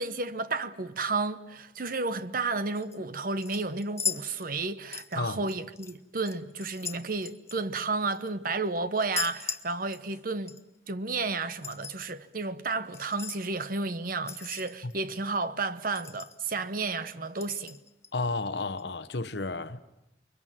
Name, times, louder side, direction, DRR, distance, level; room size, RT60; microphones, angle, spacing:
voice 1, 0.0-10.6 10.9-17.8, right 3 dB, 50° right, 1.0 m, -32 dB
sound 1, 2.7-3.0 3.4-4.7 4.9-5.9 6.2-8.3 9.0-10.2 10.5-10.6 11.4-12.0 12.9-13.4 14.3-15.0 15.3-15.4 15.7-15.8 15.9-16.6 17.4-18.1 18.8-18.9, left 6 dB, 15° left, 0.9 m, -38 dB
voice 2, 5.1-5.5 14.8-14.9 18.1-19.8, left 3 dB, 70° left, 1.1 m, -32 dB
29.0 x 23.0 x 7.6 m
head